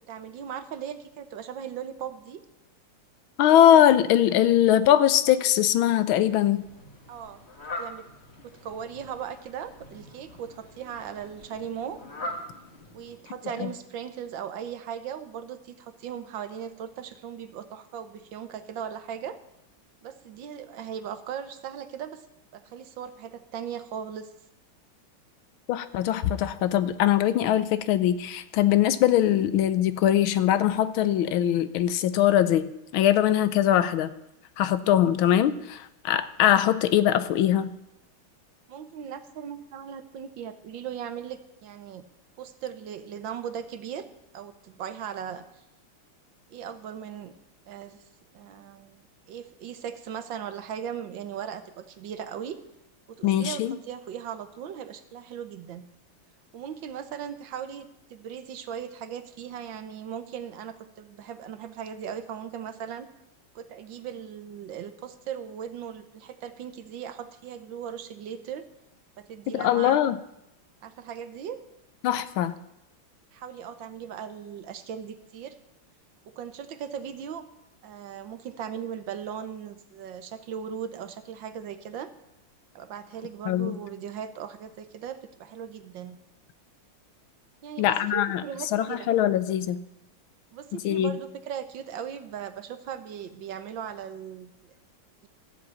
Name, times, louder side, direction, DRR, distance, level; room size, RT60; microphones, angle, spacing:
voice 1, 0.0-2.4 7.1-7.4 7.8-8.1 8.4-12.0 12.9-19.4 20.0-22.3 22.5-24.3 38.7-42.0 42.4-44.1 44.3-45.6 46.5-47.3 47.7-48.0 48.3-52.6 53.1-55.8 56.5-63.1 63.5-68.6 69.2-70.0 70.8-71.6 73.3-75.6 76.3-77.4 77.8-82.1 82.7-86.2 87.6-89.1 90.5-94.7, right 8 dB, 65° right, 10 dB, 1.6 m, -38 dB
voice 2, 3.4-6.7 13.6-13.7 25.7-34.1 34.6-37.7 53.2-53.8 69.5-70.2 72.0-72.5 83.5-83.7 87.8-88.4 88.7-89.8 90.7-91.1, left 11 dB, 80° left, 14 dB, 1.5 m, -22 dB
Fowl, 6.1-13.5, left 1 dB, 30° left, 1.9 m, -42 dB
13.5 x 7.8 x 8.4 m, 0.83 s
omnidirectional pair, 2.3 m